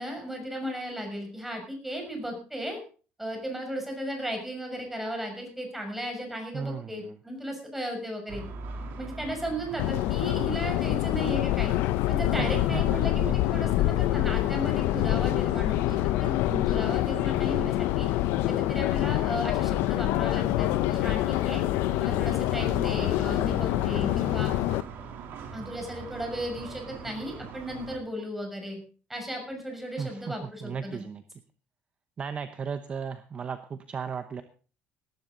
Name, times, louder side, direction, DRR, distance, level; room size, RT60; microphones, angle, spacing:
voice 1, 0.0-2.8 3.2-8.4 9.0-11.7 12.1-18.1 18.5-21.6 22.0-24.5 25.5-28.8 29.1-31.0, equal, 5° right, 2 dB, 6.3 m, -35 dB
voice 2, 6.5-7.1 12.3-13.7 30.0-31.2 32.2-34.4, right 6 dB, 30° right, 10 dB, 1.0 m, -36 dB
sound 1, 8.3-28.0, right 5 dB, 65° right, 3.2 m, -43 dB
Subway metro underground, 9.8-24.8, left 16 dB, 90° left, 0.7 m, -26 dB
19.5 x 12.0 x 3.9 m, 0.39 s
cardioid pair, 140°, 4 cm